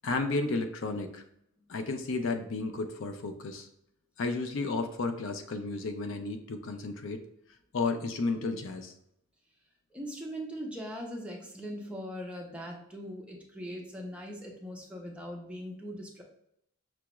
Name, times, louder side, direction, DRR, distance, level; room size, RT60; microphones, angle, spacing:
voice 1, 0.0-1.2 1.7-3.7 4.2-7.3 7.7-8.9, left 3 dB, 60° left, 6 dB, 0.4 m, -32 dB
voice 2, 9.9-16.2, equal, 5° right, -1 dB, 0.6 m, -40 dB
5.9 x 2.3 x 3.0 m, 0.75 s
head